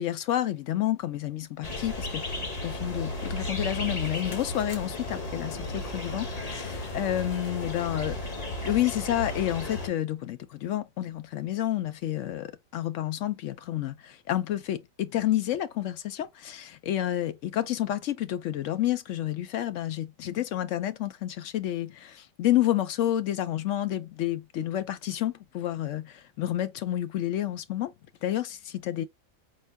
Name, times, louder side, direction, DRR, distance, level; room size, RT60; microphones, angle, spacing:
voice 1, 0.0-8.2 8.6-27.9 28.2-29.0, left 12 dB, 70° left, 0.9 m, -30 dB
sound 1, 1.6-9.9, left 2 dB, 30° left, 1.0 m, -34 dB
4.4 x 4.3 x 2.2 m
omnidirectional pair, 1.4 m